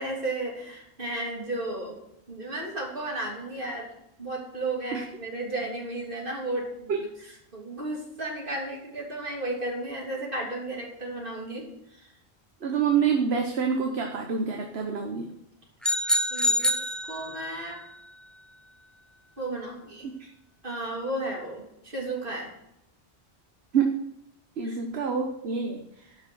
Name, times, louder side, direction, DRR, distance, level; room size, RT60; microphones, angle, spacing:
voice 1, 0.0-2.0 2.3-3.9 4.2-6.9 7.5-12.1 16.3-17.8 19.4-20.1 20.6-22.5 24.6-24.8, right 2 dB, 55° right, -2 dB, 3.3 m, -34 dB
voice 2, 12.6-15.3 20.2-20.3 23.7-24.0 24.6-25.8, right 6 dB, 75° right, 3 dB, 1.4 m, -26 dB
sound 1, 15.8-17.7, left 1 dB, ahead, 0.7 m, -26 dB
11.5 x 6.3 x 6.3 m, 0.80 s
omnidirectional pair, 1.1 m